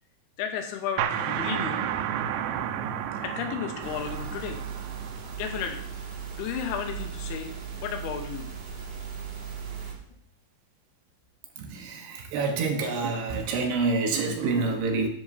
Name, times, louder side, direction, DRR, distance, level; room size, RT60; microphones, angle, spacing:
voice 1, 0.4-1.9 3.2-4.6 5.4-5.8 6.1-7.5 7.8-8.5, left 8 dB, 80° left, 4 dB, 2.4 m, -33 dB
sound 1, 1.0-6.4, right 9 dB, 90° right, 2.5 m, -32 dB
sound 2, 3.8-9.9, right 7 dB, 55° right, 3.8 m, -37 dB
voice 2, 11.6-15.1, right 4 dB, 75° right, 3 dB, 2.7 m, -27 dB
10.5 x 10.5 x 2.7 m, 0.68 s
omnidirectional pair, 5.6 m